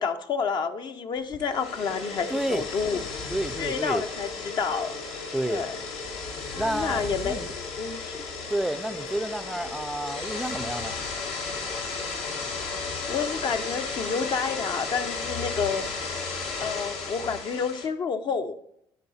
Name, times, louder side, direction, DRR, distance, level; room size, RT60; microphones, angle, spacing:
voice 1, 0.0-3.0 3.6-4.9 5.4-5.7 6.5-8.2 12.8-15.9 16.6-18.6, left 5 dB, 50° left, 0.6 m, -29 dB
sound 1, 1.3-17.9, left 4 dB, 75° left, 1.3 m, -34 dB
voice 2, 2.3-2.7 3.3-4.0 5.3-5.7 6.6-7.5 8.5-11.0, right 1 dB, 5° right, 0.4 m, -30 dB
10.5 x 3.8 x 4.1 m
supercardioid pair, 90°, 10 cm